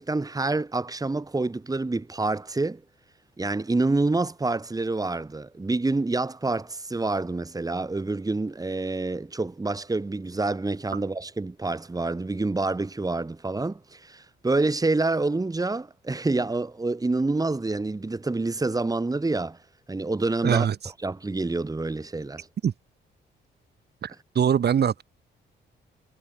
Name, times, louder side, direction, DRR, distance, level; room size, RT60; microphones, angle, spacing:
voice 1, 0.0-2.8 3.4-19.6 19.9-20.7 21.0-22.5, right 3 dB, 20° right, 3.7 m, -27 dB
voice 2, 20.4-20.8 22.6-22.7 24.0-25.0, right 8 dB, 55° right, 5.7 m, -23 dB
cardioid pair, 90°, 20 cm